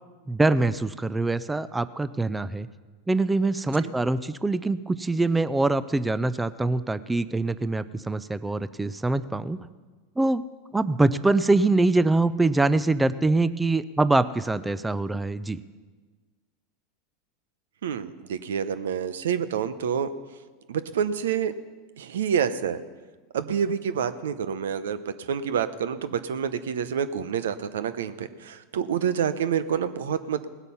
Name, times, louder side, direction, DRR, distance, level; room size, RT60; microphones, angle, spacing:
voice 1, 0.3-2.7 3.1-9.6 10.2-10.5 10.7-15.6, right 2 dB, 10° right, 15 dB, 0.4 m, -24 dB
voice 2, 17.8-20.1 20.7-21.5 22.0-22.8 23.3-30.4, right 8 dB, 85° right, 13 dB, 0.7 m, -28 dB
18.0 x 8.2 x 5.6 m, 1.4 s
hypercardioid pair, 105°, 0 cm